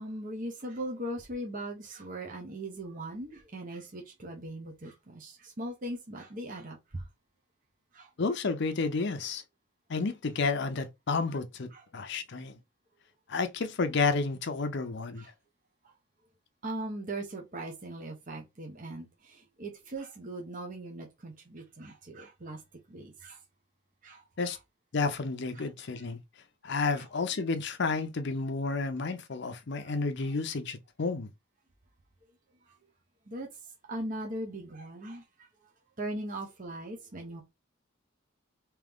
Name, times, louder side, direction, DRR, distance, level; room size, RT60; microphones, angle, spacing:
voice 1, 0.0-7.0 7.9-8.1 11.7-11.8 15.2-15.3 16.6-22.6 22.9-23.4 24.0-24.6 25.6-25.7 27.0-27.1 29.8-30.0 32.7-32.8 33.3-33.5 33.9-35.5 36.0-37.4, right 1 dB, 40° right, 0.9 m, -39 dB
voice 2, 8.2-9.4 9.9-12.6 13.3-15.3 24.4-24.6 24.9-26.2 26.6-31.3, left 4 dB, 55° left, 0.6 m, -31 dB
3.5 x 2.9 x 3.6 m
head